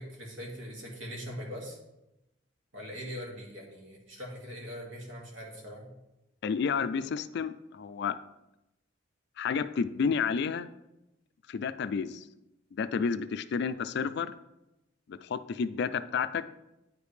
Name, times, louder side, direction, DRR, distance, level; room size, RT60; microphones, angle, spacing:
voice 1, 0.0-1.8 2.7-5.9, equal, 80° right, -1 dB, 1.9 m, -41 dB
voice 2, 6.4-8.2 9.4-10.7 11.5-12.2 12.8-14.3 15.1-16.4, left 6 dB, 60° left, 13 dB, 0.3 m, -30 dB
9.2 x 5.1 x 3.2 m, 0.92 s
head